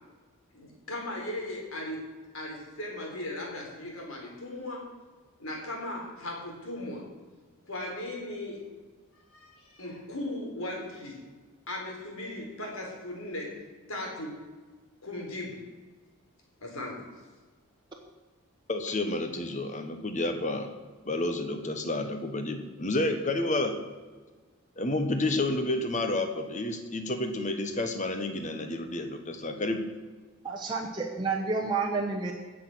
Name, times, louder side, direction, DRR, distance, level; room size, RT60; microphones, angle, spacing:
voice 1, 0.5-2.0 2.3-4.9 5.4-7.0 7.7-8.6 9.3-11.2 11.7-13.6 13.9-14.3 15.0-15.6 16.6-17.0, left 1 dB, 70° left, -1 dB, 4.0 m, -37 dB
voice 2, 18.7-20.7 21.0-23.8 24.8-29.8, left 2 dB, 35° left, 6 dB, 1.2 m, -30 dB
voice 3, 30.4-32.3, right 4 dB, 20° right, -2 dB, 1.0 m, -30 dB
17.0 x 6.5 x 6.3 m, 1.4 s
head